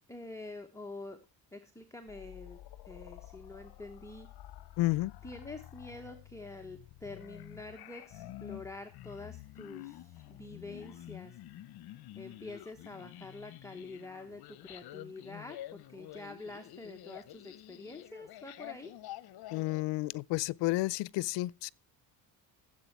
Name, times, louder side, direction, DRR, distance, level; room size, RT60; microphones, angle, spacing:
voice 1, 0.1-1.2 1.5-2.6 2.9-4.3 5.2-11.4 12.1-18.9, left 2 dB, 5° left, 1.0 m, -47 dB
sound 1, 2.1-19.8, left 14 dB, 60° left, 0.9 m, -49 dB
voice 2, 4.8-5.1 19.5-21.7, left 19 dB, 85° left, 0.5 m, -31 dB
15.0 x 7.7 x 4.5 m
cardioid pair, 140°, 42 cm